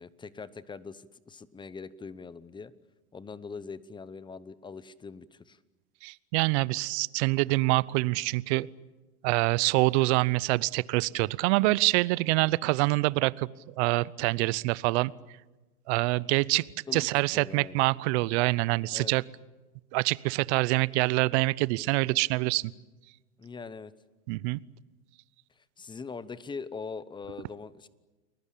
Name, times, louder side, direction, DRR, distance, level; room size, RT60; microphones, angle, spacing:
voice 1, 0.0-2.7 3.1-5.6 16.9-17.8 18.9-19.1 23.4-23.9 25.8-27.9, left 5 dB, 10° left, 17 dB, 0.8 m, -42 dB
voice 2, 6.0-8.7 9.2-13.5 13.8-15.1 15.9-16.6 16.9-19.2 19.9-22.7 24.3-24.6, right 22 dB, 45° right, 21 dB, 0.8 m, -25 dB
30.0 x 21.0 x 8.5 m, 1.2 s
hypercardioid pair, 125°, 45 cm